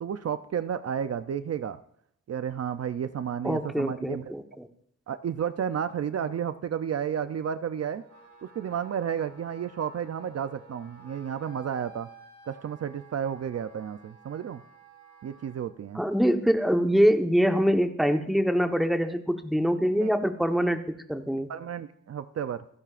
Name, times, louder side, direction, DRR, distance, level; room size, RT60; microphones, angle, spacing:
voice 1, 0.0-1.8 2.3-4.3 5.1-8.0 8.4-12.1 12.5-14.6 15.2-16.0 20.0-20.1 21.5-22.6, right 8 dB, 55° right, 11 dB, 0.5 m, -32 dB
voice 2, 3.4-4.7 15.9-21.5, equal, ahead, 5 dB, 1.0 m, -24 dB
Wind instrument woodwind instrument, 7.9-15.6, right 4 dB, 75° right, 4.8 m, -53 dB
27.5 x 10.5 x 2.5 m, 0.69 s
wide cardioid pair, 120°, 29 cm